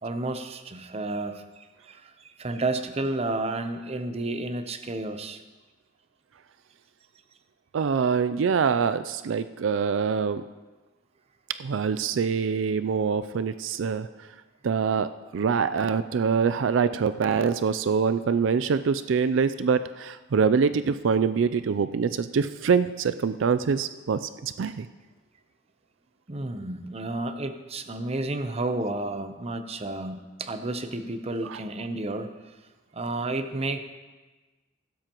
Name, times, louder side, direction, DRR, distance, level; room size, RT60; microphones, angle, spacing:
voice 1, 0.0-5.4 26.3-32.3 32.9-33.8, right 2 dB, 35° right, 8 dB, 0.7 m, -31 dB
voice 2, 7.7-10.4 11.6-14.1 14.6-24.9 31.4-31.6, right 6 dB, 80° right, 12 dB, 0.4 m, -25 dB
15.5 x 12.5 x 3.0 m, 1.2 s
head